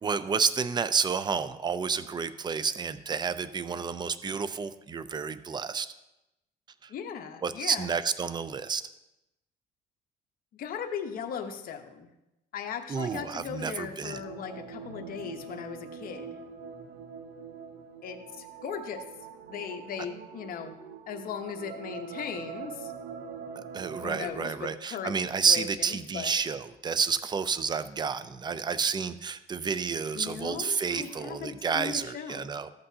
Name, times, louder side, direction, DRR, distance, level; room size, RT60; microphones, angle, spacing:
voice 1, 0.0-5.9 6.8-6.9 7.4-8.8 12.9-14.2 23.7-32.7, right 6 dB, 25° right, 13 dB, 0.5 m, -30 dB
voice 2, 6.9-7.9 10.5-12.1 12.5-16.4 18.0-19.0 19.5-20.7 21.1-22.9 24.0-25.2 25.5-26.3 30.1-32.5, left 7 dB, 60° left, 5 dB, 1.0 m, -38 dB
sound 1, 14.1-24.3, right 6 dB, 70° right, 0.9 m, -43 dB
13.5 x 7.8 x 2.8 m, 0.93 s
cardioid pair, 110°, 17 cm